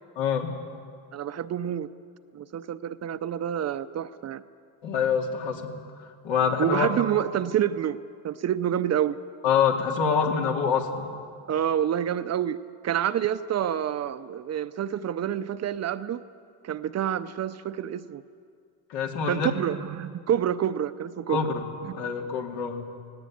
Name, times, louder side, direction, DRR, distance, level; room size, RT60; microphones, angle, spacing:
voice 1, 0.2-0.5 4.8-5.8 6.2-6.9 9.4-11.1 18.9-19.5 21.3-21.6 21.9-22.9, left 6 dB, 80° left, 2 dB, 2.6 m, -25 dB
voice 2, 1.1-1.9 2.3-4.4 6.6-8.0 8.2-9.2 11.5-12.6 12.8-16.2 16.6-18.2 19.2-21.4 21.9-22.0, right 10 dB, 40° right, 13 dB, 0.6 m, -28 dB
19.0 x 17.5 x 8.7 m, 2.2 s
cardioid pair, 135°, 42 cm